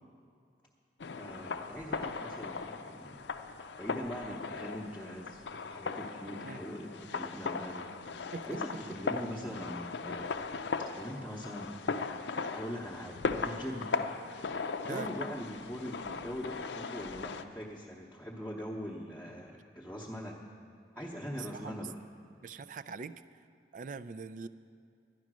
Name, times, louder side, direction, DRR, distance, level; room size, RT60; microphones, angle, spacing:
sound 1, 1.0-17.4, left 4 dB, 75° left, 0.5 m, -38 dB
voice 1, 1.2-3.2 3.8-7.8 8.4-10.3 11.0-11.8 12.5-13.9 14.8-20.4 20.9-22.0, equal, 5° left, -4 dB, 0.9 m, -42 dB
voice 2, 21.3-21.9 22.4-23.2 23.7-24.5, right 5 dB, 45° right, 13 dB, 0.3 m, -42 dB
11.5 x 10.5 x 6.1 m, 2.4 s
head